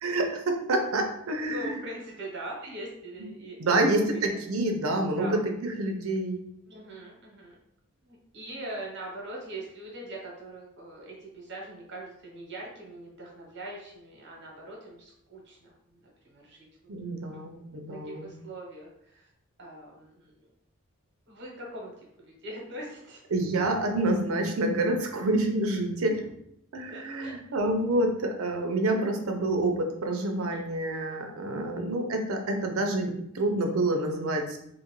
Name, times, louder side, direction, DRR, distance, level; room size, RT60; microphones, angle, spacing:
voice 1, 0.0-1.8 3.6-6.4 16.9-18.3 23.3-26.3 26.7-34.6, right 2 dB, 70° right, 3 dB, 0.5 m, -28 dB
voice 2, 1.5-3.6 3.8-4.4 5.2-5.4 6.7-7.5 8.0-16.7 17.3-17.6 17.9-19.3 19.6-20.3 21.3-21.9 22.2-23.2 26.9-27.4 30.4-30.6, right 1 dB, 55° right, -2 dB, 0.9 m, -42 dB
2.6 x 2.4 x 3.0 m, 0.74 s
head